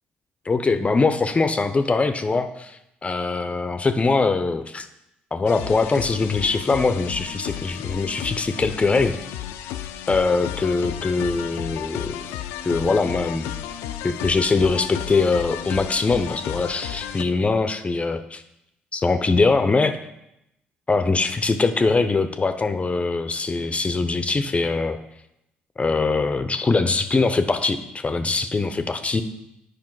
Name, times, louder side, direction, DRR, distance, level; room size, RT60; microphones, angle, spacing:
voice 1, 0.5-4.9 5.3-9.2 10.1-12.2 12.6-13.5 14.0-18.4 18.9-20.0 20.9-25.0 25.8-29.2, left 3 dB, 30° left, 9 dB, 0.6 m, -22 dB
sound 1, 5.5-17.2, left 11 dB, 80° left, 0.4 m, -33 dB
7.4 x 5.0 x 4.6 m, 0.84 s
hypercardioid pair, 55°, 4 cm